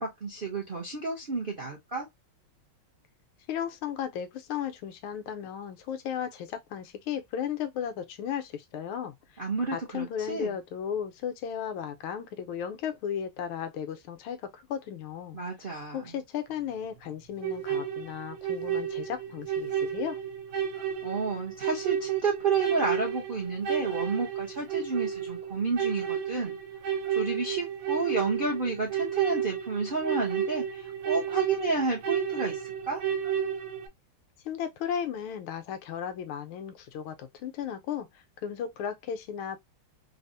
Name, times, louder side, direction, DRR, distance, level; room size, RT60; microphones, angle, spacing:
voice 1, 0.0-2.1 9.4-10.6 15.3-16.2 21.0-26.6 26.9-32.6 32.9-33.0, right 4 dB, 55° right, 0.6 m, -31 dB
voice 2, 3.5-9.4 9.7-15.4 15.9-20.2 34.4-38.1 38.4-39.6, left 8 dB, 80° left, 1.5 m, -35 dB
sound 1, 17.4-33.9, right 8 dB, 75° right, 1.4 m, -32 dB
4.0 x 2.0 x 2.6 m
omnidirectional pair, 2.3 m